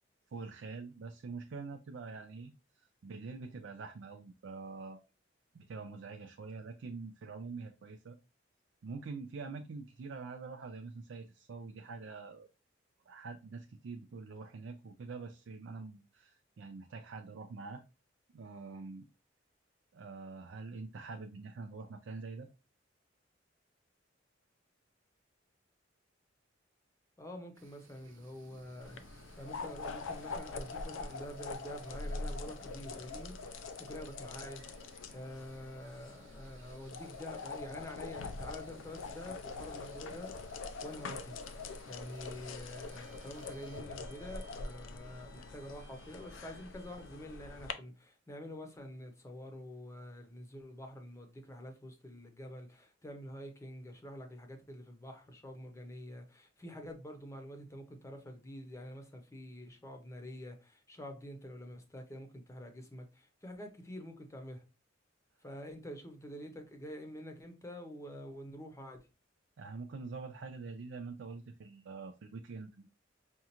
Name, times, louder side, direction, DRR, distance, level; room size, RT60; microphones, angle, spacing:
voice 1, 0.3-5.0 5.5-8.2 8.8-12.5 13.1-17.8 18.3-19.1 19.9-22.5 69.6-72.9, right 4 dB, 65° right, 0.4 m, -45 dB
voice 2, 27.2-34.6 35.1-41.4 41.9-64.6 65.4-69.1, equal, 15° left, 0.7 m, -47 dB
sound 1, 27.5-43.8, right 3 dB, 80° right, 0.9 m, -62 dB
sound 2, 28.8-47.7, left 3 dB, 85° left, 0.5 m, -44 dB
Bowed string instrument, 42.7-47.3, right 4 dB, 40° right, 0.8 m, -64 dB
5.2 x 2.4 x 2.9 m
head